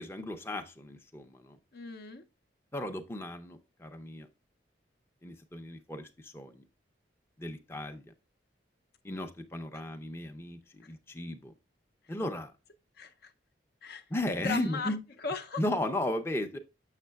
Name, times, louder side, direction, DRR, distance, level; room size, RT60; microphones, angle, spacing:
voice 1, 0.0-1.6 2.7-4.3 5.2-6.6 7.4-8.1 9.0-11.5 12.1-12.5 14.1-15.0 15.6-16.6, left 1 dB, 15° left, 0.5 m, -35 dB
voice 2, 1.7-2.3 13.0-13.3 13.8-14.0 14.4-15.0 15.2-15.6, left 4 dB, 55° left, 0.6 m, -37 dB
6.9 x 6.4 x 2.2 m
head